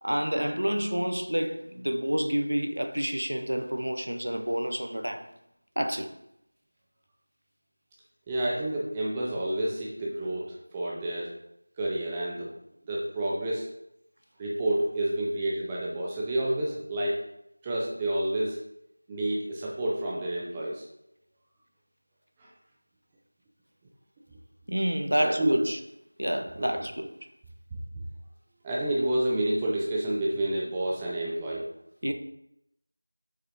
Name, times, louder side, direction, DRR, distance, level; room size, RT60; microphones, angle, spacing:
voice 1, 0.0-5.3 5.8-6.1 24.7-25.8 26.2-27.1 32.0-32.1, equal, 80° right, 1.0 m, -29 dB
voice 2, 8.3-11.3 11.8-12.5 12.9-13.7 14.4-17.3 17.6-18.6 19.1-20.8 25.2-25.6 26.6-26.7 28.6-31.6, right 1 dB, 5° right, 0.3 m, -29 dB
6.3 x 5.8 x 3.5 m
figure-of-eight pair, 180°, 0 cm